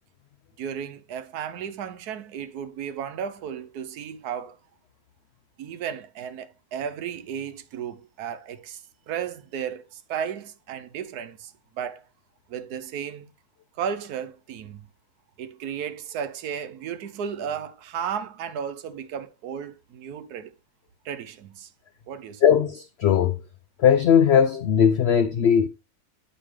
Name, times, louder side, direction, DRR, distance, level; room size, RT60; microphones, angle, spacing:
voice 1, 0.6-4.6 5.6-12.0 12.5-13.3 13.8-14.8 15.4-20.5 21.0-21.7 22.1-22.4, right 8 dB, 85° right, 1.3 m, -34 dB
voice 2, 22.4-23.4 23.8-25.7, left 8 dB, 80° left, 0.5 m, -19 dB
8.0 x 5.1 x 3.2 m
omnidirectional pair, 1.6 m